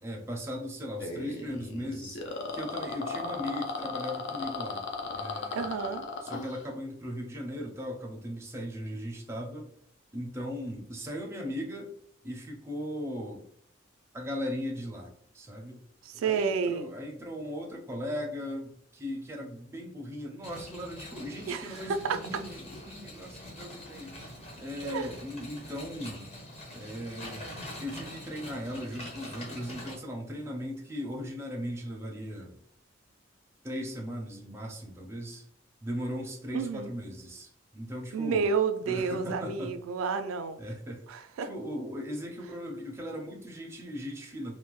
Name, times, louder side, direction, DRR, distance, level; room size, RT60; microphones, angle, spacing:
voice 1, 0.0-4.8 5.1-5.7 6.2-9.7 10.1-11.9 12.2-13.4 14.1-15.8 16.2-24.2 24.6-26.3 26.7-32.6 33.6-35.5 35.8-38.5 38.8-39.8 40.6-41.0 41.4-44.6, equal, 15° right, 0 dB, 0.5 m, -38 dB
sound 1, 1.0-6.6, left 3 dB, 60° left, 0.5 m, -36 dB
voice 2, 5.5-6.0 16.0-16.9 21.5-21.8 22.1-22.2 24.8-25.1 36.5-36.9 38.1-40.6 41.1-41.5, right 5 dB, 90° right, 8 dB, 0.3 m, -30 dB
sound 2, 20.4-29.9, left 1 dB, 30° left, 0.8 m, -44 dB
2.5 x 2.1 x 3.0 m, 0.69 s
head